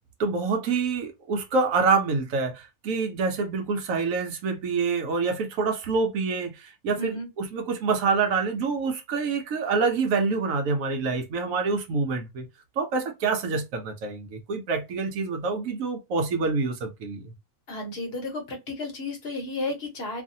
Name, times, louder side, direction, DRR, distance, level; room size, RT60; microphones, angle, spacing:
voice 1, 0.2-12.5 12.8-17.3, right 4 dB, 70° right, 1.0 m, -26 dB
voice 2, 7.0-7.3 17.7-20.2, left 2 dB, 45° left, 1.1 m, -33 dB
2.7 x 2.5 x 2.6 m
omnidirectional pair, 1.6 m